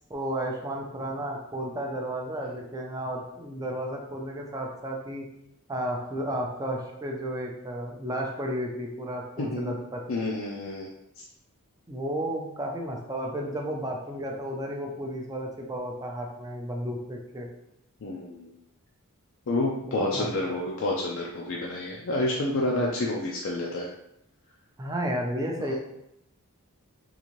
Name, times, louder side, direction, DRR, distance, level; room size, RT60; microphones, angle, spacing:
voice 1, 0.1-5.2 5.7-10.0 11.9-17.5 19.8-20.5 22.5-22.8 24.8-25.7, right 1 dB, 15° right, 0 dB, 0.5 m, -33 dB
voice 2, 9.4-9.8 10.1-10.9 18.0-18.5 19.5-23.9 25.6-25.7, left 2 dB, 60° left, -2 dB, 0.4 m, -29 dB
3.8 x 2.6 x 3.0 m, 0.81 s
head